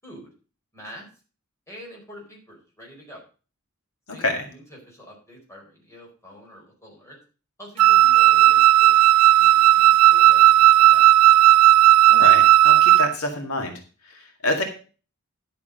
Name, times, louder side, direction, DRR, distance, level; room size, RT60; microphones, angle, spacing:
voice 1, 0.7-1.1 1.7-3.2 4.1-7.2 7.6-9.0 9.4-11.1, equal, 15° left, -2 dB, 4.6 m, -45 dB
Wind instrument woodwind instrument, 7.8-13.1, right 14 dB, 90° right, 0.4 m, -14 dB
voice 2, 12.1-13.7 14.1-14.6, left 2 dB, 80° left, 3 dB, 2.1 m, -26 dB
11.0 x 6.9 x 5.2 m, 0.36 s
head